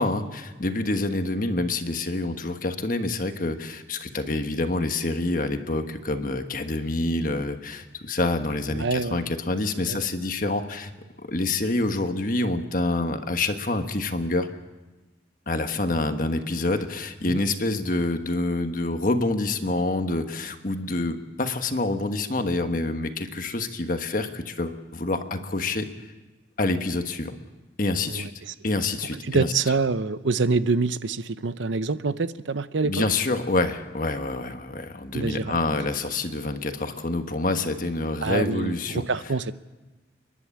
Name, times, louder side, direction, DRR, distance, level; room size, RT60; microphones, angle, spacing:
voice 1, 0.0-10.9 11.2-14.5 15.5-26.1 26.6-27.3 27.8-28.3 28.6-29.5 32.8-39.0, left 2 dB, 45° left, 7 dB, 1.4 m, -27 dB
voice 2, 8.7-9.3 9.9-10.0 17.3-17.4 28.1-28.5 29.3-33.0 35.1-35.5 38.2-39.5, right 4 dB, 80° right, 14 dB, 0.7 m, -26 dB
30.0 x 11.0 x 8.5 m, 1.2 s
head